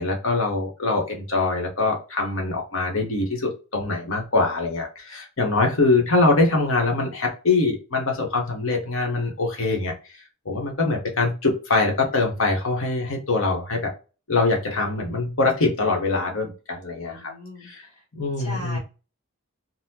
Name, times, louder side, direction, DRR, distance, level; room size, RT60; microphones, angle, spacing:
voice 1, 0.0-9.9 10.4-13.9 14.3-17.3 17.6-17.8 18.1-18.8, left 3 dB, 75° left, 1 dB, 1.2 m, -23 dB
voice 2, 17.1-18.0 18.4-18.8, left 1 dB, 30° left, -3 dB, 1.6 m, -38 dB
4.0 x 2.2 x 2.8 m, 0.32 s
head